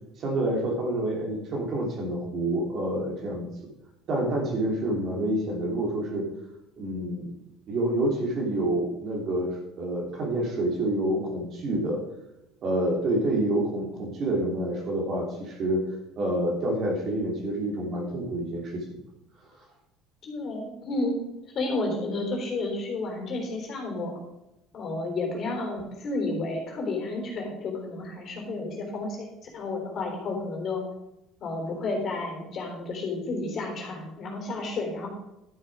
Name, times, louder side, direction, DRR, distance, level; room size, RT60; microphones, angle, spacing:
voice 1, 0.2-3.7 4.1-6.3 6.8-7.3 7.7-12.0 12.6-15.8 16.2-19.0, right 1 dB, 45° right, -1 dB, 3.1 m, -28 dB
voice 2, 20.2-21.2 21.5-24.2 24.7-30.8 31.4-35.1, left 2 dB, 40° left, 1 dB, 3.7 m, -31 dB
12.0 x 7.4 x 5.0 m, 0.92 s
cardioid pair, 140°, 0 cm